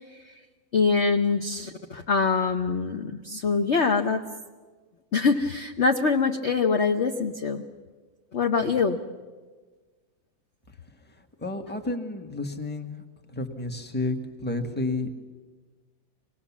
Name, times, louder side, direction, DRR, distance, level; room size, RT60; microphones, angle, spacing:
voice 1, 0.7-4.2 5.1-7.6 8.3-9.0, left 4 dB, 45° left, 4 dB, 1.0 m, -24 dB
voice 2, 11.4-13.0 13.3-15.1, left 2 dB, 5° left, 4 dB, 1.3 m, -31 dB
25.5 x 19.5 x 7.3 m, 1.4 s
omnidirectional pair, 2.0 m